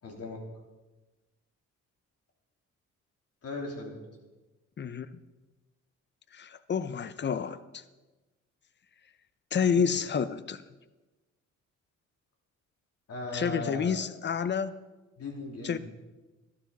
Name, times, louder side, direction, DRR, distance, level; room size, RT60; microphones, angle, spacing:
voice 1, 0.0-0.4 3.4-4.0 9.7-9.8 13.1-14.0 15.2-15.8, left 2 dB, 55° left, 0 dB, 3.4 m, -37 dB
voice 2, 6.3-7.8 9.5-10.6 13.3-14.7 15.6-15.8, left 7 dB, 35° left, 15 dB, 0.7 m, -29 dB
12.5 x 12.0 x 4.1 m, 1.2 s
cardioid pair, 90°, 30 cm